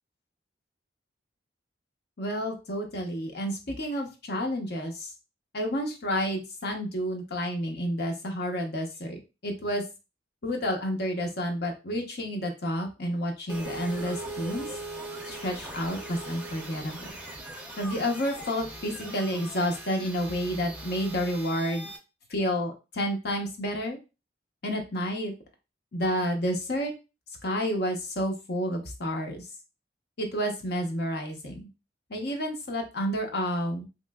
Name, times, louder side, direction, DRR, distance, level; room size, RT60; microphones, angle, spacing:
voice 1, 2.2-5.1 5.5-9.8 10.4-14.7 15.3-17.2 17.8-21.9 22.3-24.0 24.6-25.3 25.9-26.9 27.4-29.5 30.2-31.6 32.1-33.9, equal, 60° left, 3 dB, 0.8 m, -30 dB
sound 1, 13.5-22.0, right 2 dB, 5° right, 0.6 m, -40 dB
3.2 x 3.0 x 2.2 m, 0.28 s
head